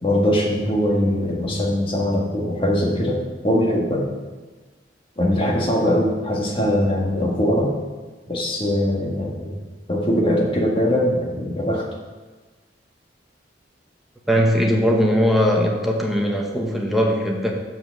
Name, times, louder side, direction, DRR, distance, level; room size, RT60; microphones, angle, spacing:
voice 1, 0.0-4.1 5.2-7.7 8.3-9.6 9.9-11.9, left 1 dB, 30° left, -2 dB, 1.6 m, -21 dB
voice 2, 14.3-17.5, equal, ahead, 0 dB, 1.0 m, -19 dB
7.1 x 5.9 x 6.4 m, 1.3 s
head